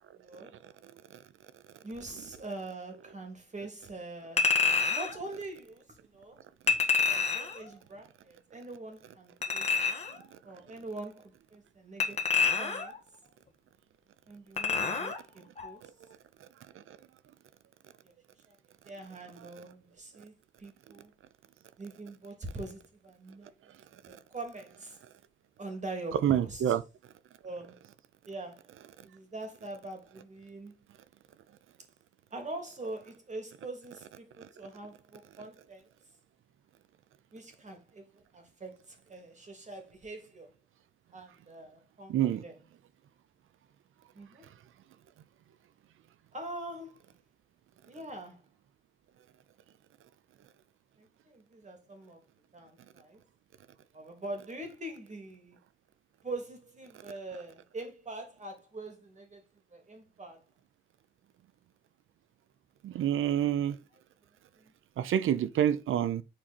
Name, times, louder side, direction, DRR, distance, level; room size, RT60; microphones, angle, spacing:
voice 1, 0.2-0.5 1.8-4.5 4.9-6.4 6.7-9.8 10.4-12.2 12.6-13.0 14.3-15.9 18.0-18.1 18.5-18.6 18.8-21.1 21.8-23.5 24.0-25.0 25.6-26.8 27.4-27.8 28.3-28.7 29.0-30.8 32.3-35.9 37.3-40.5 41.1-42.2 42.4-42.6 44.1-44.5 46.3-47.0 47.9-48.4 51.0-52.2 52.5-53.2 53.9-55.6 56.2-59.4 59.7-60.4 64.5-64.7, right 2 dB, 35° right, 3.0 m, -43 dB
Chink clink, 4.4-5.1 6.7-7.6 9.4-10.2 12.0-13.0 14.6-15.2 15.6-15.7, left 5 dB, 30° left, 1.7 m, -27 dB
voice 2, 26.2-26.8 42.1-42.4 62.8-63.8 65.0-66.2, right 10 dB, 80° right, 0.7 m, -27 dB
7.6 x 4.4 x 4.3 m
cardioid pair, 100°, 20 cm